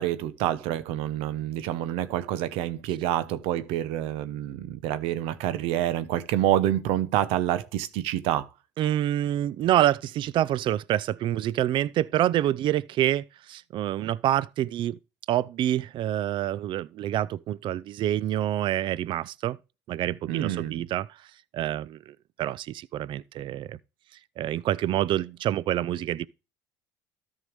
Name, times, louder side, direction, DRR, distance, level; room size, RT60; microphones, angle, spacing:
voice 1, 0.0-8.5 20.3-20.8, right 12 dB, 70° right, 0.9 m, -27 dB
voice 2, 8.8-15.0 15.3-19.6 19.9-21.1 21.5-23.8 24.4-26.3, right 12 dB, 55° right, 0.5 m, -27 dB
13.0 x 5.6 x 3.3 m
hypercardioid pair, 70°, 10 cm